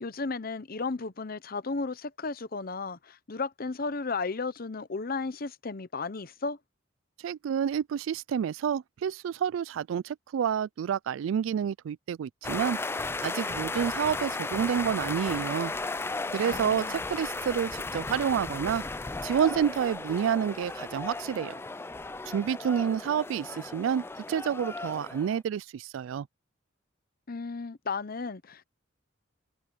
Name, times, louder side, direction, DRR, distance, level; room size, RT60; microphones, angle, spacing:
voice 1, 0.0-6.6 16.4-17.0 27.3-28.6, left 4 dB, 50° left, 0.9 m, -34 dB
voice 2, 7.2-12.8 13.2-15.7 16.3-18.8 19.2-21.6 22.3-26.3, right 8 dB, 80° right, 0.3 m, -29 dB
sound 1, 12.4-25.4, left 3 dB, 10° left, 0.4 m, -35 dB
head